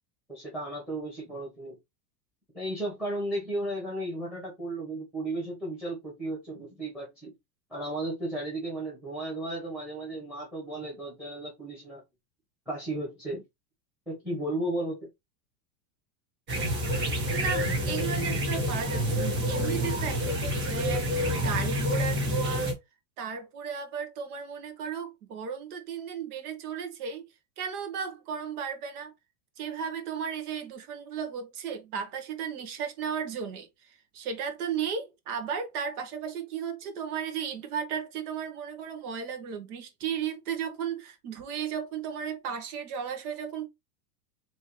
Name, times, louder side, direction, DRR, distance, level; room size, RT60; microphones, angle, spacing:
voice 1, 0.3-1.8 2.5-7.3 7.7-12.0 12.7-13.4 14.1-15.1, right 1 dB, ahead, 1.3 m, -34 dB
sound 1, 16.5-22.7, equal, 25° right, 1.7 m, -28 dB
voice 2, 17.3-22.7 23.2-27.3 27.6-29.1 29.6-43.7, right 7 dB, 65° right, 1.5 m, -35 dB
4.3 x 3.1 x 3.3 m
supercardioid pair, 165°, 48 cm